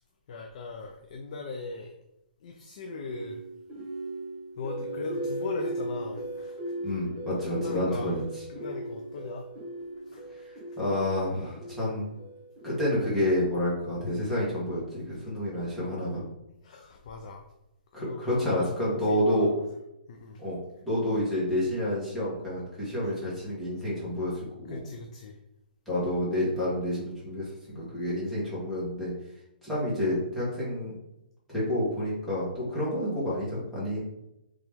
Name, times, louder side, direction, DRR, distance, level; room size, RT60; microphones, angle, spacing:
voice 1, 0.3-1.9 2.4-3.4 4.6-6.6 7.5-8.2 8.5-9.5 10.1-10.4 16.6-17.4 18.0-19.5 20.1-20.4 23.0-23.1 24.7-25.4, left 3 dB, 40° left, 3 dB, 0.4 m, -39 dB
sound 1, 3.1-13.2, right 1 dB, 20° right, 0.9 m, -38 dB
voice 2, 6.8-8.2 10.8-12.1 12.6-16.2 17.9-19.5 20.4-20.6 20.8-24.8 25.9-27.4 27.7-29.1 29.6-30.9 31.5-34.0, left 1 dB, ahead, -10 dB, 1.2 m, -29 dB
3.2 x 2.9 x 3.5 m, 0.89 s
hypercardioid pair, 165°, 5 cm